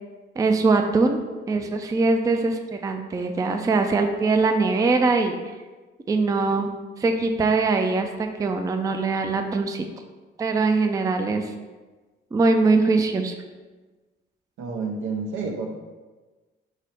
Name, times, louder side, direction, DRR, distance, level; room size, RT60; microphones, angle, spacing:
voice 1, 0.4-1.2 1.5-5.4 6.1-6.7 7.0-9.8 10.4-11.5 12.3-13.4, right 3 dB, 15° right, 5 dB, 0.3 m, -22 dB
voice 2, 14.6-15.7, right 4 dB, 80° right, 2 dB, 0.7 m, -29 dB
4.8 x 2.0 x 4.2 m, 1.3 s
cardioid pair, 90°, 20 cm